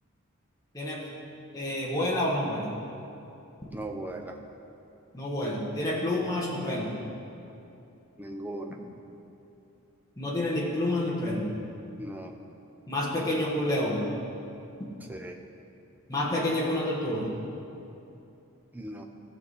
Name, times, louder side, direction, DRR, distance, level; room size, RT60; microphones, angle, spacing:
voice 1, 1.5-2.7 5.1-6.9 10.2-11.5 12.9-14.0 16.1-17.3, left 1 dB, 15° left, -5 dB, 1.6 m, -28 dB
voice 2, 3.7-4.3 8.2-8.8 12.0-12.3 15.1-15.4 18.7-19.0, right 1 dB, 10° right, 2 dB, 0.6 m, -38 dB
16.5 x 7.1 x 4.2 m, 2.8 s
head